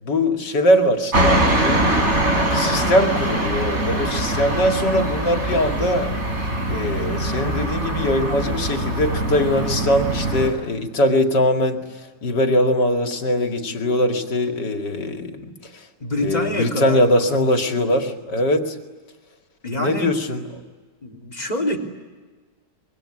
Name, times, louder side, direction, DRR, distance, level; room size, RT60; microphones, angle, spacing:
voice 1, 0.0-1.9 2.4-6.1 6.7-11.8 12.2-15.8 16.2-18.8 19.8-20.5, left 1 dB, 80° left, 5 dB, 2.9 m, -21 dB
sound 1, 1.1-10.5, right 1 dB, 40° right, 4.3 m, -22 dB
voice 2, 16.0-17.9 19.6-20.1 21.0-21.8, left 1 dB, 25° left, 0 dB, 3.4 m, -27 dB
25.5 x 23.5 x 9.9 m, 1.4 s
omnidirectional pair, 1.9 m